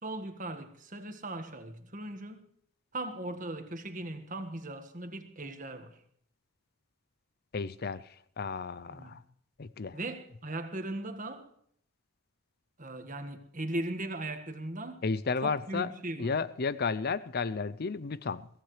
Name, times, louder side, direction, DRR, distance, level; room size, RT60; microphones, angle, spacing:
voice 1, 0.0-2.4 2.9-6.0 8.9-9.2 9.9-11.5 12.8-15.0 15.4-16.3, right 1 dB, 35° right, 7 dB, 1.6 m, -38 dB
voice 2, 7.5-9.2 9.6-10.0 15.0-15.9 16.2-18.5, left 4 dB, 45° left, 16 dB, 0.5 m, -33 dB
23.0 x 16.5 x 3.3 m, 0.66 s
head